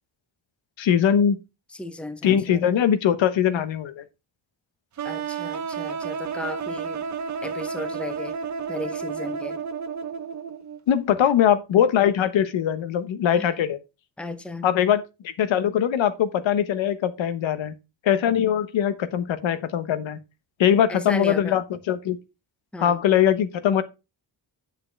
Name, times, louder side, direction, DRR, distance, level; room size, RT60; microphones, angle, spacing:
voice 1, 0.8-1.4 2.2-4.0 10.9-13.8 14.6-17.7 18.0-20.2 20.6-22.2 22.8-23.8, left 9 dB, 85° left, 1.2 m, -21 dB
voice 2, 1.8-2.6 5.0-7.1 7.4-8.4 8.7-9.6 13.3-13.5 14.2-14.7 20.9-21.6 22.7-23.0, left 2 dB, ahead, 0.7 m, -35 dB
sound 1, 5.0-10.8, right 6 dB, 40° right, 0.8 m, -31 dB
8.8 x 7.0 x 3.3 m
wide cardioid pair, 150°, 45 cm